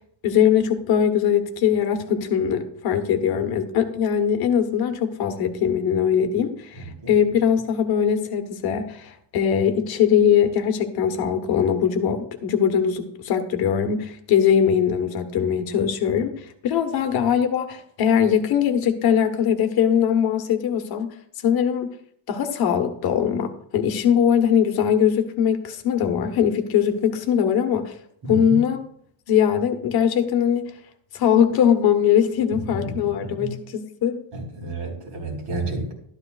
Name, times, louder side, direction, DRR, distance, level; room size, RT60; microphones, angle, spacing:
voice 1, 0.2-21.1 21.4-21.9 22.3-28.0 28.3-28.8 29.3-30.7 31.1-34.2, left 8 dB, 55° left, 6 dB, 1.2 m, -21 dB
voice 2, 6.7-7.1 28.2-28.6 32.7-33.5 34.3-35.9, right 2 dB, 70° right, -2 dB, 4.5 m, -31 dB
12.5 x 12.5 x 2.4 m, 0.65 s
cardioid pair, 180°, 45 cm